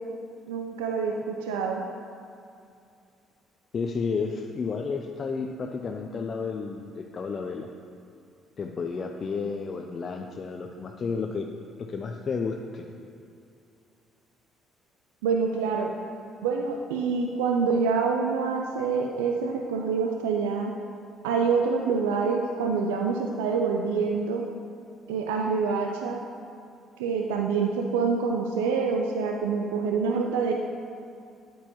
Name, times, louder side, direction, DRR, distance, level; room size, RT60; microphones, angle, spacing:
voice 1, 0.5-1.8 15.2-15.9 16.4-20.7 21.2-24.4 25.1-26.2 27.0-30.5, right 5 dB, 80° right, 2 dB, 0.4 m, -26 dB
voice 2, 3.7-7.7 8.6-11.5 11.8-12.9, left 5 dB, 45° left, 3 dB, 0.5 m, -32 dB
9.3 x 8.2 x 3.0 m, 2.5 s
hypercardioid pair, 50°, 0 cm